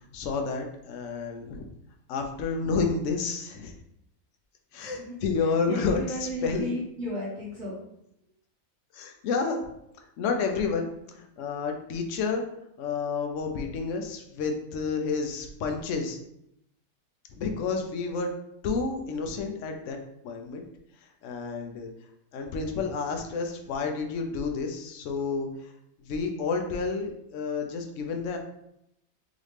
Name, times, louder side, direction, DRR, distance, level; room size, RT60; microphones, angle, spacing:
voice 1, 0.1-1.7 2.1-3.7 4.7-6.0 6.4-6.7 8.9-9.7 10.2-12.4 12.8-16.2 17.4-18.3 18.6-20.0 20.2-20.6 21.2-21.9 22.3-25.7 26.0-28.4, left 4 dB, 65° left, 4 dB, 0.9 m, -30 dB
voice 2, 4.7-7.8 18.0-18.1, equal, 40° right, -6 dB, 1.0 m, -35 dB
4.0 x 3.0 x 3.2 m, 0.78 s
omnidirectional pair, 1.5 m